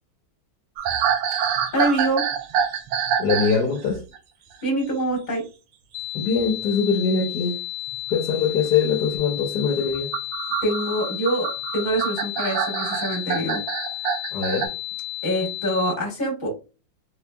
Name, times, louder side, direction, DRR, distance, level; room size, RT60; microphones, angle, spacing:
sound 1, 0.8-3.6 3.9-4.2 6.4-6.6 7.9-8.0 9.9-14.7, right 8 dB, 75° right, 1.4 m, -26 dB
voice 1, 1.7-2.2 4.6-5.4 10.6-13.6 15.2-16.5, right 1 dB, 25° left, 1.4 m, -25 dB
voice 2, 3.2-4.0 6.1-7.5 8.1-10.1 14.3-14.7, left 5 dB, 60° left, 1.3 m, -22 dB
sound 2, 5.9-15.9, left 17 dB, 80° left, 1.4 m, -33 dB
4.2 x 3.1 x 2.2 m
omnidirectional pair, 2.2 m